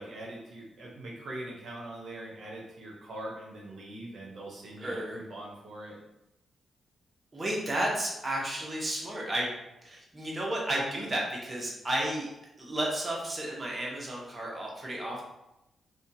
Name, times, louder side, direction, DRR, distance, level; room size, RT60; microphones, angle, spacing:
voice 1, 0.0-6.0, right 1 dB, 65° right, -4 dB, 0.7 m, -42 dB
voice 2, 4.8-5.2 7.3-9.5 9.8-12.3 12.6-15.2, right 1 dB, 30° right, -3 dB, 0.9 m, -32 dB
2.7 x 2.3 x 2.6 m, 0.91 s
cardioid pair, 60°, 0 cm